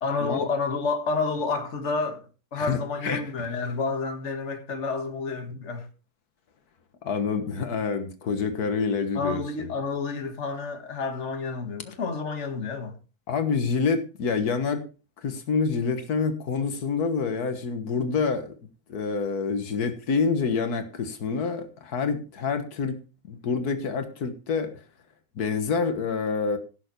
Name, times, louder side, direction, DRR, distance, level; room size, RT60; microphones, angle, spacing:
voice 1, 0.0-5.9 9.1-13.0, left 4 dB, 50° left, 1.9 m, -30 dB
voice 2, 2.6-3.2 7.0-9.7 13.3-14.8 15.2-18.5 18.9-23.0 23.3-24.8 25.4-26.6, left 5 dB, 85° left, 1.8 m, -27 dB
16.5 x 6.7 x 4.5 m
omnidirectional pair, 1.6 m